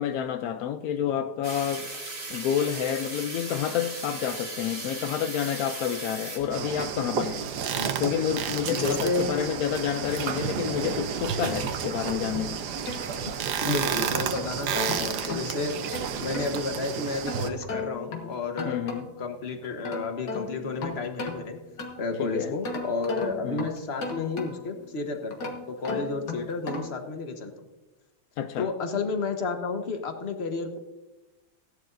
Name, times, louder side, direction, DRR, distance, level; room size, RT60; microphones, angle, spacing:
voice 1, 0.0-1.9 2.3-7.5 8.0-12.6 18.6-19.1 22.2-22.5 23.4-23.7 28.4-28.7, left 9 dB, 80° left, 0.8 m, -29 dB
sound 1, 1.4-6.9, right 2 dB, 30° right, 1.8 m, -37 dB
sound 2, 6.5-17.5, right 8 dB, 65° right, 1.2 m, -31 dB
voice 2, 8.7-9.2 13.6-15.7 16.2-18.8 19.2-21.6 22.0-27.5 28.6-30.8, left 3 dB, 40° left, 1.2 m, -31 dB
sound 3, 12.3-13.7 14.1-16.6 17.3-19.3 19.6-22.2 22.6-24.8 25.3-27.1, left 3 dB, 60° left, 2.0 m, -36 dB
16.5 x 11.0 x 2.6 m
omnidirectional pair, 2.1 m